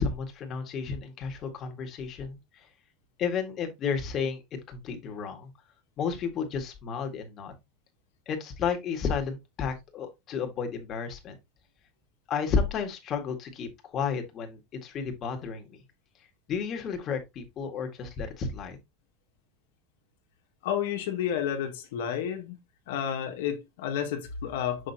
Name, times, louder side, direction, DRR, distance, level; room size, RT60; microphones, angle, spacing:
voice 1, 0.0-2.4 3.2-4.4 4.7-5.5 6.0-7.5 8.3-11.3 12.3-15.8 16.5-18.8, left 6 dB, 40° left, 1.8 m, -32 dB
voice 2, 20.6-22.6 22.9-24.9, left 9 dB, 85° left, 1.8 m, -31 dB
6.3 x 6.0 x 2.8 m
supercardioid pair, 130°, 0 cm